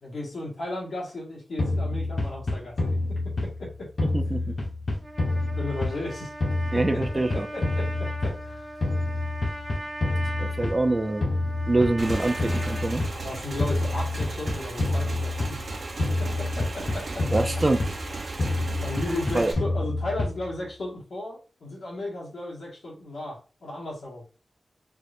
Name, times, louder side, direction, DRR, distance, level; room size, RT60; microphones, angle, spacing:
voice 1, 0.0-3.0 3.6-3.9 5.6-6.3 6.7-8.6 13.1-15.6 16.2-17.4 18.8-24.2, left 2 dB, 85° left, -5 dB, 2.0 m, -35 dB
sound 1, 1.6-3.7 4.0-6.1 6.4-8.5 8.8-10.9 11.2-13.2 13.6-15.7 16.0-18.1 18.4-20.5, left 2 dB, 60° left, 1.4 m, -27 dB
voice 2, 4.0-4.5 6.7-7.5 10.4-11.3 11.7-13.0 17.3-17.8 19.3-19.5, right 2 dB, 35° right, 6 dB, 0.7 m, -25 dB
Trumpet, 4.9-12.9, right 1 dB, 15° right, 2.3 m, -39 dB
Motorcycle / Engine, 12.0-19.5, right 3 dB, 65° right, 0.9 m, -36 dB
4.5 x 3.1 x 2.7 m, 0.34 s
cardioid pair, 55°, 0 cm